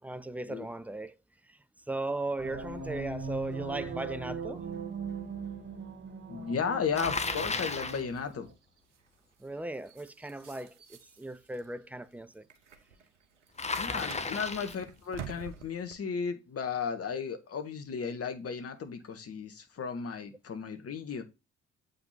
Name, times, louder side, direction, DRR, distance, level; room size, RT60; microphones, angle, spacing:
voice 1, 0.0-1.1 1.5-1.6 1.9-4.7 9.4-12.5, right 2 dB, 5° right, 0.6 m, -37 dB
sound 1, 2.4-8.5, right 4 dB, 30° right, 2.3 m, -40 dB
voice 2, 6.3-8.5 13.8-21.2, left 6 dB, 40° left, 1.7 m, -35 dB
Bicycle, 6.9-8.1 13.6-14.8, left 3 dB, 20° left, 1.2 m, -34 dB
sound 2, 7.9-15.9, right 7 dB, 80° right, 1.1 m, -50 dB
7.8 x 5.2 x 4.4 m
figure-of-eight pair, 45°, 35 cm